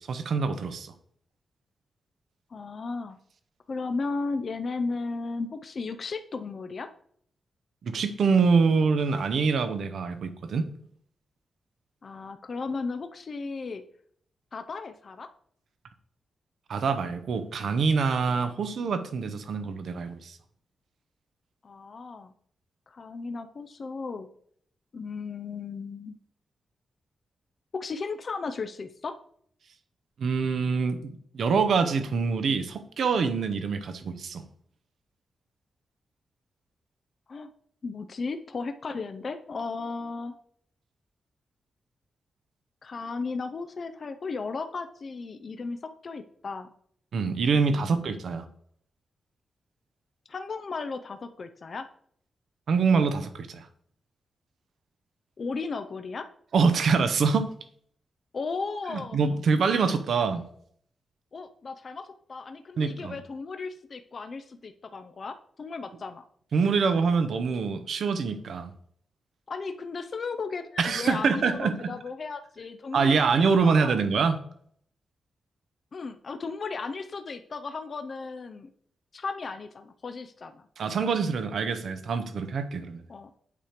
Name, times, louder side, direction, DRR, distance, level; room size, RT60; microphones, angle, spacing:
voice 1, 0.1-0.9 7.8-10.7 16.7-20.4 30.2-34.4 47.1-48.4 52.7-53.7 56.5-57.5 58.9-60.4 62.8-63.2 66.5-68.7 70.8-71.9 72.9-74.4 80.8-83.0, right 5 dB, 65° right, 10 dB, 0.7 m, -25 dB
voice 2, 2.5-3.2 3.7-6.9 12.0-13.8 14.5-15.3 21.6-22.3 22.9-24.3 24.9-26.2 27.7-29.1 37.3-37.5 37.8-40.3 42.8-45.8 46.0-46.7 47.5-47.9 50.3-51.9 55.4-56.3 58.3-59.2 61.3-66.2 69.5-73.4 73.6-74.0 75.9-78.7 79.1-80.7 83.1-83.3, left 4 dB, 40° left, 8 dB, 0.4 m, -35 dB
8.3 x 3.0 x 5.0 m, 0.63 s
wide cardioid pair, 150°, 0 cm